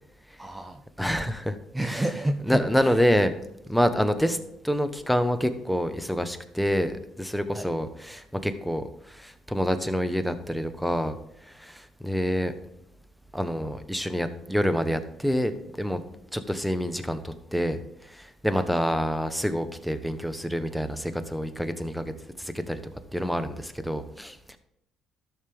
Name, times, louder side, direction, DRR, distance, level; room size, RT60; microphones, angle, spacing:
voice 1, 0.4-0.8 1.7-3.0 7.5-7.7 18.5-18.6, right 1 dB, 15° right, 7 dB, 0.7 m, -30 dB
voice 2, 1.0-1.6 1.9-2.0 2.5-3.3 3.7-4.4 4.6-11.2 11.5-12.5 13.3-22.8 23.1-24.6, equal, ahead, 10 dB, 1.1 m, -27 dB
12.5 x 6.6 x 3.6 m, 0.82 s
supercardioid pair, 80°, 0 cm